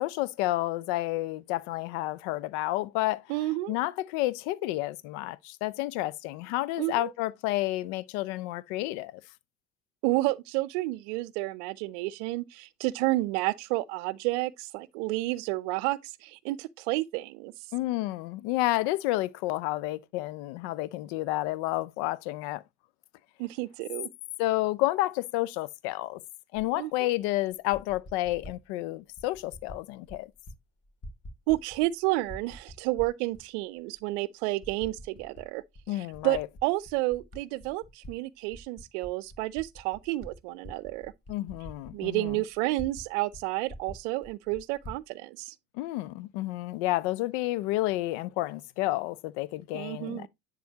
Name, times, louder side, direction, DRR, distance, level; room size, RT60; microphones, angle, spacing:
voice 1, 0.0-3.2 3.7-9.2 17.7-22.6 24.4-26.2 26.5-30.3 35.9-36.5 41.3-42.4 45.7-50.3, left 17 dB, 65° left, 0.6 m, -30 dB
voice 2, 3.3-3.7 6.8-7.1 10.0-17.5 23.4-24.1 26.8-27.1 31.5-41.1 41.9-45.5 49.7-50.3, right 19 dB, 70° right, 0.6 m, -30 dB
Typing, 26.5-26.7 27.5-28.6 29.2-29.8 30.1-30.6 30.8-31.9 32.2-33.4 34.0-34.1 34.6-35.5 35.7-38.1 38.5-43.1 43.3-43.4 43.7-45.0, equal, 40° left, 2.7 m, -46 dB
10.0 x 3.8 x 2.8 m
hypercardioid pair, 60°, 37 cm